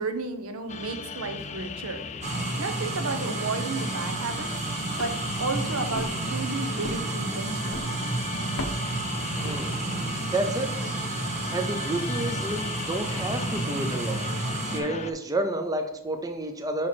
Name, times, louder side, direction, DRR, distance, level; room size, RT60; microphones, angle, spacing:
voice 1, 0.0-2.0 2.6-4.5 4.8-7.9, right 3 dB, 70° right, 7 dB, 0.8 m, -33 dB
sound 1, 0.7-15.1, left 4 dB, 30° left, 0.5 m, -36 dB
sound 2, 2.2-14.8, right 3 dB, 30° right, 1.0 m, -31 dB
sound 3, 4.0-10.1, left 1 dB, 80° left, 0.9 m, -42 dB
voice 2, 9.4-9.8 10.3-10.7 11.5-14.3 14.6-16.9, right 1 dB, 15° right, 5 dB, 0.5 m, -30 dB
5.9 x 4.6 x 4.2 m, 0.82 s
head